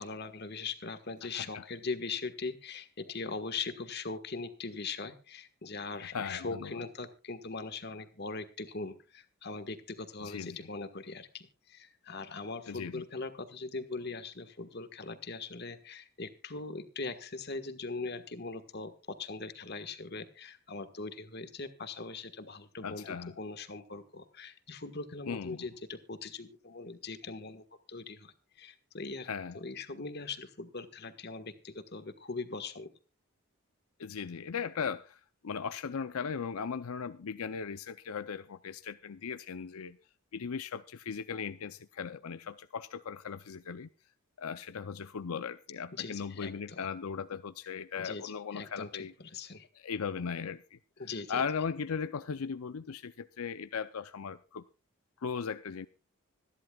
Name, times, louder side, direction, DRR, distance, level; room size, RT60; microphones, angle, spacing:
voice 1, 0.0-29.3 29.5-32.9 45.9-46.9 48.0-49.7 51.0-51.4, left 4 dB, 50° left, 1.5 m, -41 dB
voice 2, 1.2-1.6 6.0-6.8 10.2-10.6 12.7-13.0 22.8-23.3 25.3-25.7 29.2-29.6 34.0-40.0 40.3-43.9 44.4-49.1 49.8-54.7 55.2-55.9, left 6 dB, 80° left, 0.5 m, -38 dB
26.0 x 11.0 x 2.3 m
head